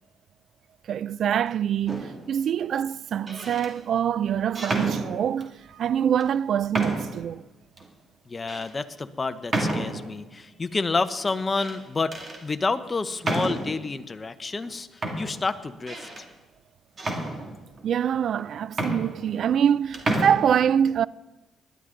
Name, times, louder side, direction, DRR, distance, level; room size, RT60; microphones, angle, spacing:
voice 1, 0.9-7.4 17.8-21.1, right 9 dB, 65° right, 0.3 m, -25 dB
sound 1, 1.9-2.3 3.1-3.7 4.5-5.5 6.2-6.3 6.7-7.3 7.8-7.9 8.5-8.7 9.5-10.2 11.3-11.8 12.1-12.4 13.2-13.8 14.6-14.7 15.0-16.3 17.0-17.8 18.4-18.5 18.7-19.7 19.9-20.3, right 2 dB, 35° right, 2.4 m, -30 dB
voice 2, 8.3-12.2 12.4-14.9 15.2-16.1, left 3 dB, 30° left, 0.8 m, -29 dB
19.5 x 11.5 x 3.8 m
cardioid pair, 90°, 0 cm